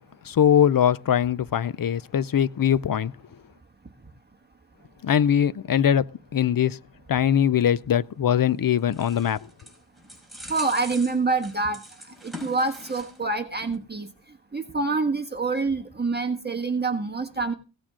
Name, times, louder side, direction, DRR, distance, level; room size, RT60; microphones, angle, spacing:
voice 1, 0.3-3.1 5.0-6.1 6.3-6.8 7.1-9.4, left 9 dB, 50° left, 0.5 m, -21 dB
sound 1, 8.4-13.3 13.6-13.8, left 1 dB, ahead, 5.2 m, -43 dB
voice 2, 10.5-11.8 12.2-14.1 14.5-17.5, right 3 dB, 20° right, 1.5 m, -26 dB
17.0 x 8.7 x 3.7 m
wide cardioid pair, 95°, 45 cm